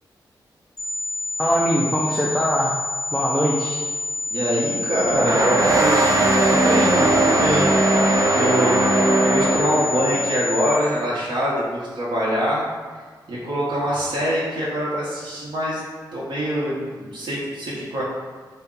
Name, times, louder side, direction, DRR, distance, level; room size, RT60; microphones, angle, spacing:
sound 1, 0.8-10.8, left 2 dB, 50° left, 0.8 m, -28 dB
voice 1, 1.4-2.7 3.1-3.8, equal, 5° left, -5 dB, 0.4 m, -21 dB
voice 2, 4.3-7.7 8.3-12.6 13.3-15.8 16.1-18.0, equal, 85° right, -7 dB, 1.0 m, -24 dB
sound 2, 5.1-10.2, right 2 dB, 45° right, 0.5 m, -19 dB
4.1 x 2.2 x 3.7 m, 1.5 s
wide cardioid pair, 155°, 8 cm